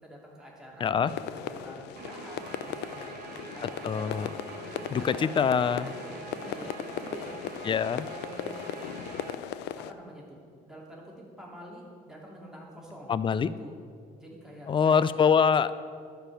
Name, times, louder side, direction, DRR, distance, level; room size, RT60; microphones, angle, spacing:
voice 1, 0.0-3.1 3.5-4.1 4.6-5.4 5.7-7.5 8.0-8.5 9.3-9.4 9.8-10.4 10.6-13.8 14.1-15.1, equal, 5° right, -4 dB, 2.7 m, -47 dB
sound 1, 1.1-9.9, left 10 dB, 85° left, 0.5 m, -38 dB
Guitar, 2.0-9.3, right 5 dB, 60° right, 1.1 m, -44 dB
voice 2, 3.8-4.3 4.9-5.9 7.7-8.0 13.1-13.5 14.7-15.7, left 6 dB, 30° left, 15 dB, 0.4 m, -24 dB
11.5 x 5.3 x 7.7 m, 2.1 s
cardioid pair, 110°, 17 cm